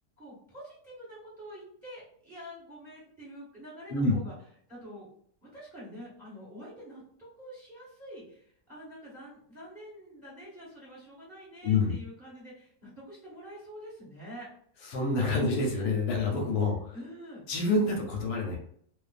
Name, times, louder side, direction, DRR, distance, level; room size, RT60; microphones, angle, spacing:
voice 1, 0.2-4.3 4.7-5.1 5.4-14.5 16.9-17.4, equal, 10° right, -7 dB, 1.2 m, -46 dB
voice 2, 14.9-16.9 17.5-18.6, left 3 dB, 85° left, 1 dB, 1.2 m, -27 dB
2.4 x 2.4 x 2.4 m, 0.62 s
omnidirectional pair, 1.6 m